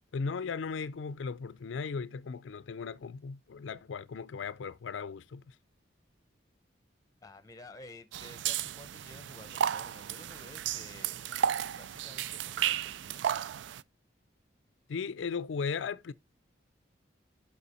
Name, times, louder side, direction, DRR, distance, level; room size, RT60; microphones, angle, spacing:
voice 1, 0.1-5.5 14.9-16.1, left 5 dB, 85° left, 0.4 m, -37 dB
voice 2, 7.2-13.4, left 2 dB, 20° left, 0.7 m, -52 dB
sound 1, 8.1-13.8, right 9 dB, 75° right, 0.3 m, -33 dB
6.8 x 5.7 x 4.2 m
head